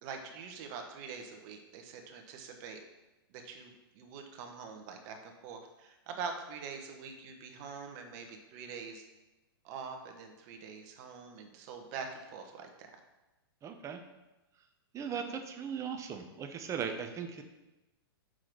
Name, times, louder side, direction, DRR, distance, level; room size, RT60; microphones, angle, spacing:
voice 1, 0.0-2.8 3.3-9.0 9.6-12.9 15.1-15.4, right 5 dB, 45° right, 4 dB, 1.3 m, -44 dB
voice 2, 13.6-14.0 14.9-17.4, right 7 dB, 25° right, 5 dB, 0.9 m, -38 dB
6.1 x 4.8 x 6.1 m, 1.0 s
hypercardioid pair, 115°, 13 cm